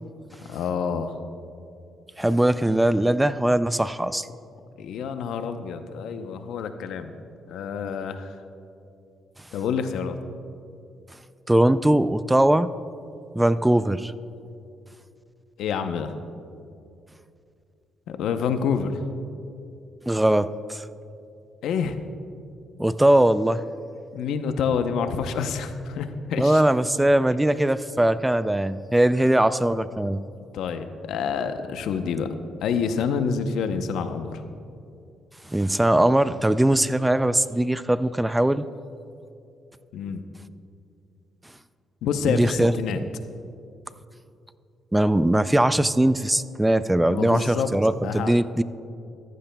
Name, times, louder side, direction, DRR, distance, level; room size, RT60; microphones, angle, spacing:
voice 1, 0.5-1.1 4.8-7.1 7.5-8.3 9.5-10.2 15.6-16.1 18.1-18.9 21.6-22.0 24.1-26.6 30.5-32.3 32.6-34.4 39.9-40.2 42.0-43.0 47.0-47.7 48.0-48.3, left 6 dB, 80° left, 8 dB, 0.7 m, -27 dB
voice 2, 2.2-4.3 11.5-12.7 13.3-14.1 20.1-20.9 22.8-23.6 26.4-30.2 35.5-38.6 42.3-43.0 44.9-48.6, right 1 dB, 10° right, 14 dB, 0.3 m, -21 dB
14.5 x 14.0 x 2.3 m, 2.5 s
cardioid pair, 90°, 0 cm